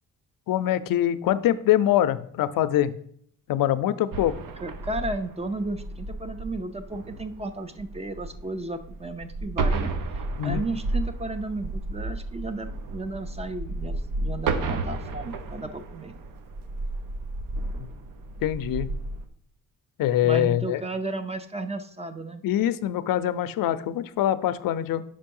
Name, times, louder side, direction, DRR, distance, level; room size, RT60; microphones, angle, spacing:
voice 1, 0.5-2.9 3.5-4.3 10.4-10.7 17.8-17.9 18.4-18.9 20.0-20.8 22.4-25.0, left 12 dB, 85° left, 14 dB, 0.5 m, -24 dB
sound 1, 4.1-19.3, right 2 dB, 70° right, 0.8 m, -32 dB
voice 2, 4.6-16.1 20.2-22.4, right 2 dB, 20° right, 10 dB, 0.4 m, -34 dB
5.5 x 5.1 x 5.3 m, 0.65 s
wide cardioid pair, 145°, 33 cm